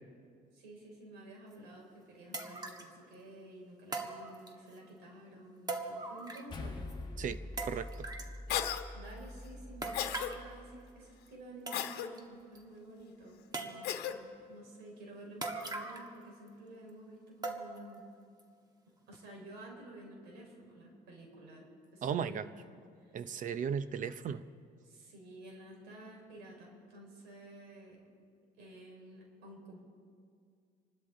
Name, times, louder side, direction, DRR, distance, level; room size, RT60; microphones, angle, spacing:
voice 1, 0.5-7.3 8.9-18.0 19.1-21.7 21.9-22.7 23.0-23.2 24.8-28.0 28.6-29.8, right 1 dB, 80° right, 0 dB, 4.5 m, -52 dB
sound 1, 1.5-1.6 2.3-2.9 3.9-4.8 5.7-6.6 6.9-7.0 7.6-8.4 9.8-10.5 11.3-11.4 11.7-12.2 12.6-12.7 13.5-14.1 15.4-16.2 16.5-16.6 17.4-18.0 18.4-18.5 19.1-19.2, right 3 dB, 25° right, 1.6 m, -41 dB
sound 2, 6.5-11.1, left 2 dB, 25° left, 1.5 m, -45 dB
voice 2, 7.2-7.9 22.0-22.5 23.1-24.4, right 7 dB, 50° right, 12 dB, 0.8 m, -36 dB
Cough, 8.5-8.8 9.9-10.3 11.7-12.1 13.8-14.2, left 10 dB, 75° left, 1.1 m, -34 dB
28.0 x 12.5 x 3.8 m, 2.2 s
cardioid pair, 110°, 17 cm